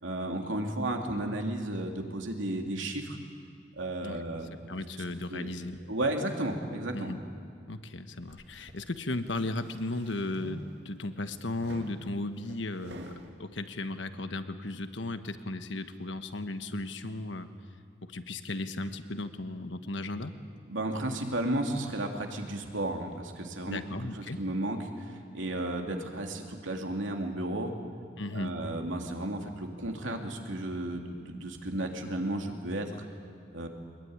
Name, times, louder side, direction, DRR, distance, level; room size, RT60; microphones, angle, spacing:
voice 1, 0.0-3.2 3.8-4.5 5.3-5.5 5.9-7.1 20.7-23.8 24.4-27.7 28.3-32.9 33.5-33.7, right 1 dB, 90° right, 2 dB, 3.0 m, -33 dB
voice 2, 4.7-5.8 6.9-7.2 7.7-13.1 13.4-17.5 18.0-20.4 23.6-24.4 28.2-28.6, left 2 dB, 75° left, 9 dB, 1.3 m, -35 dB
sound 1, 8.3-8.8 9.4-11.0 11.6-13.3, right 1 dB, 65° right, 2.2 m, -47 dB
23.5 x 21.5 x 9.7 m, 2.2 s
head